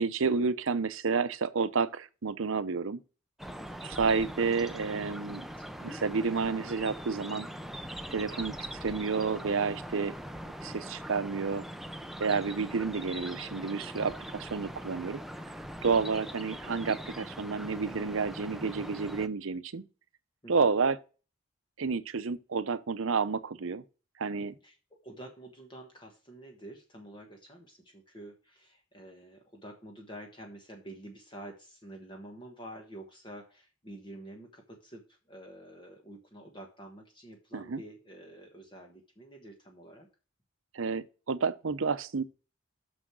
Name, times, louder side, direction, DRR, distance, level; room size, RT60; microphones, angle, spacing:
voice 1, 0.0-3.0 3.8-5.4 5.8-7.5 8.1-8.5 8.8-10.1 10.6-11.6 12.2-15.2 15.8-19.8 20.5-21.0 21.8-23.8 24.2-24.5 37.5-37.8 40.7-42.2, right 5 dB, 75° right, 0.7 m, -30 dB
sound 1, 3.4-19.3, equal, ahead, 0.5 m, -42 dB
voice 2, 3.6-4.0 5.6-6.0 15.9-16.1 20.4-20.7 24.4-40.1, right 1 dB, 25° left, 1.3 m, -49 dB
6.4 x 6.1 x 6.2 m
head